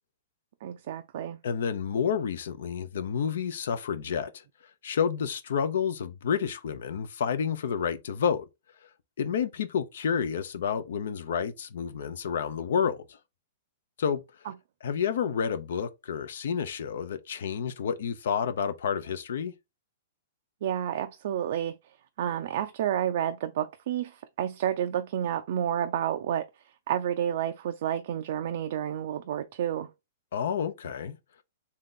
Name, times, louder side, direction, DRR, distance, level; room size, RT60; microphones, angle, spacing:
voice 1, 0.6-1.4 20.6-26.5 26.9-29.9, right 10 dB, 60° right, 0.4 m, -30 dB
voice 2, 1.4-4.4 4.8-8.5 9.2-13.2 14.0-14.2 14.8-19.5 30.3-31.2, left 7 dB, 75° left, 0.6 m, -29 dB
3.6 x 2.8 x 3.7 m
hypercardioid pair, 130°, 0 cm